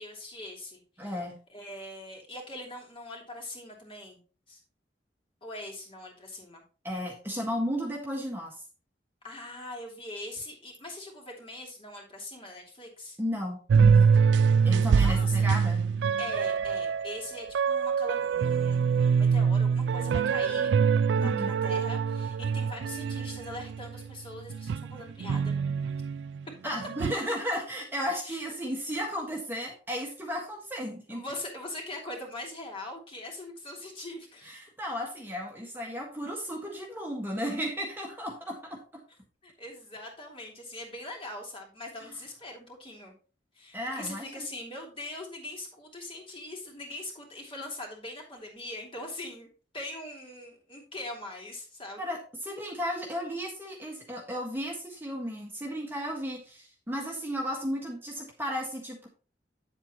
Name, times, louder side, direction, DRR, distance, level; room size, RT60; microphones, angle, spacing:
voice 1, 0.0-1.1 1.5-4.2 4.5-4.6 5.4-6.6 9.2-13.2 15.0-15.5 16.2-25.6 28.2-28.5 31.1-34.6 39.4-43.1 43.5-49.5 49.7-52.1, left 1 dB, 30° left, -1 dB, 3.0 m, -42 dB
voice 2, 1.0-1.4 6.8-8.5 13.2-14.2 14.6-15.8 21.2-21.5 26.6-31.2 34.4-38.8 43.7-44.5 52.0-59.1, equal, 15° right, -1 dB, 1.5 m, -34 dB
sound 1, 13.7-24.1 24.5-26.4 26.8-27.1, right 6 dB, 75° right, 0.3 m, -25 dB
9.2 x 7.9 x 3.0 m, 0.37 s
head